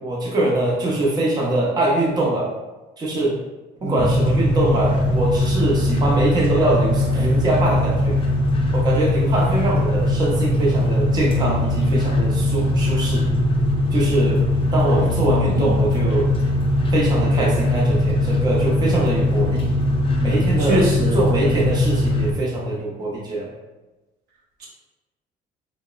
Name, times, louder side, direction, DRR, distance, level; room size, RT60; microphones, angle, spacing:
voice 1, 0.0-2.5 3.0-3.4 3.8-8.2 8.7-13.3 13.9-14.4 14.7-16.3 16.9-19.6 20.2-20.8 21.1-23.5, right 2 dB, 25° right, -4 dB, 0.6 m, -23 dB
sound 1, 4.0-22.3, left 1 dB, 30° left, 0.4 m, -20 dB
voice 2, 20.6-21.2 24.6-24.7, equal, 75° right, -4 dB, 0.8 m, -22 dB
2.8 x 2.0 x 2.3 m, 1.1 s
cardioid pair, 110°, 17 cm